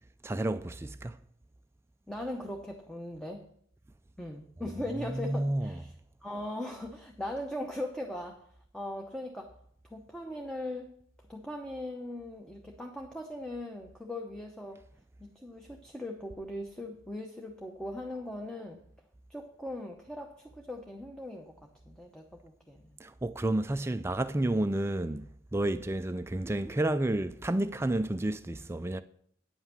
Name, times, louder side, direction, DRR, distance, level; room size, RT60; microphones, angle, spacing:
voice 1, 0.2-1.2 5.0-5.8 23.0-29.0, right 1 dB, 15° right, 0.4 m, -31 dB
voice 2, 2.1-3.5 4.2-5.9 6.2-8.4 8.7-9.5 9.9-10.9 11.3-14.8 15.2-18.8 19.3-21.5 21.9-23.0, left 1 dB, 5° left, 0.8 m, -39 dB
9.5 x 5.7 x 7.4 m
head